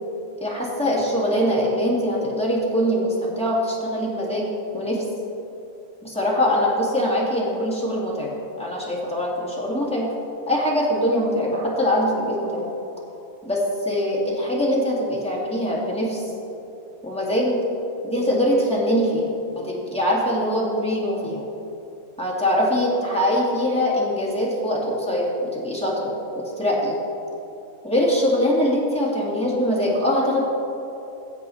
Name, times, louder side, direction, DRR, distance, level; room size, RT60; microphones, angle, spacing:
voice 1, 0.4-4.5 4.7-5.0 6.0-10.1 10.5-12.7 13.4-16.2 17.0-17.6 18.0-19.3 19.6-21.4 22.2-27.0 27.8-30.4, equal, 5° left, -5 dB, 2.2 m, -23 dB
17.0 x 7.6 x 4.1 m, 2.9 s
omnidirectional pair, 1.5 m